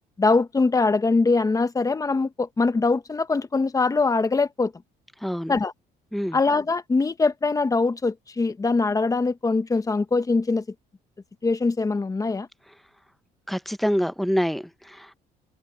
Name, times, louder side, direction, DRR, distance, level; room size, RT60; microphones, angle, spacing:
voice 1, 0.2-4.7 5.5-5.7 6.3-10.6 11.4-12.5, left 3 dB, 20° left, 1.2 m, -22 dB
voice 2, 5.2-5.6 6.1-6.4 12.7-12.8 13.5-15.1, equal, ahead, 0.8 m, -26 dB
cardioid pair, 110°, 17 cm